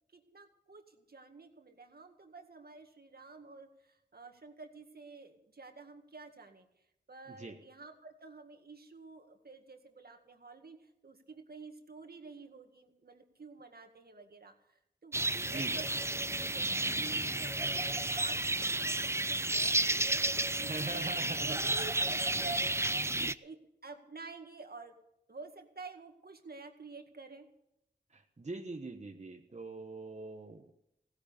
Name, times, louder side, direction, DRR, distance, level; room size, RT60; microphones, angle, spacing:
voice 1, 0.1-6.7 7.1-15.8 16.4-19.0 19.3-24.9 25.3-27.5, right 3 dB, 60° right, 5 dB, 2.0 m, -50 dB
sound 1, 15.1-23.3, right 2 dB, 15° right, 0.5 m, -32 dB
voice 2, 15.4-15.8 20.7-21.7 28.1-30.7, right 3 dB, 40° right, 3 dB, 1.2 m, -42 dB
16.0 x 10.5 x 6.9 m, 0.80 s
wide cardioid pair, 60°, 18 cm